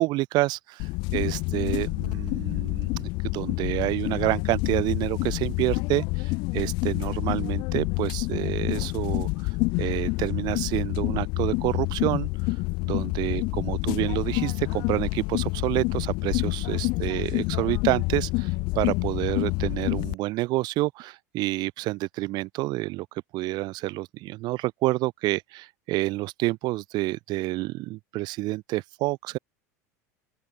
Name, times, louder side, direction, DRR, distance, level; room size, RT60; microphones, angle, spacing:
voice 1, 0.0-9.3 9.8-12.3 12.8-23.1 23.3-29.4, right 20 dB, 55° right, 2.6 m, -28 dB
sound 1, 0.8-20.1, left 26 dB, 60° left, 2.5 m, -28 dB
open air
hypercardioid pair, 90°, 9 cm